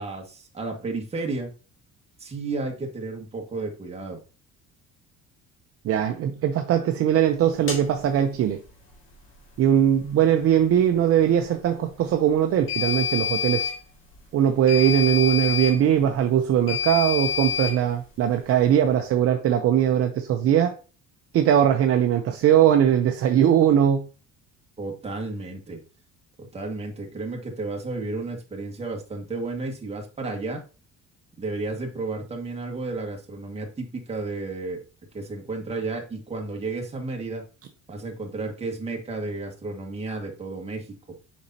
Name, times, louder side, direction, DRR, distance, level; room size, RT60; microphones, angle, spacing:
voice 1, 0.0-1.5 2.2-4.2 24.8-25.8 26.5-30.6 31.4-34.8 35.1-37.4 37.9-40.9, right 3 dB, 20° right, 1.7 m, -32 dB
voice 2, 5.8-8.6 9.6-13.7 14.3-20.7 21.3-24.0, right 10 dB, 55° right, 0.7 m, -20 dB
sound 1, 7.7-7.8 12.7-13.8 14.7-15.8 16.7-17.8, left 8 dB, 45° left, 2.1 m, -27 dB
6.9 x 5.4 x 2.8 m
cardioid pair, 120°, 29 cm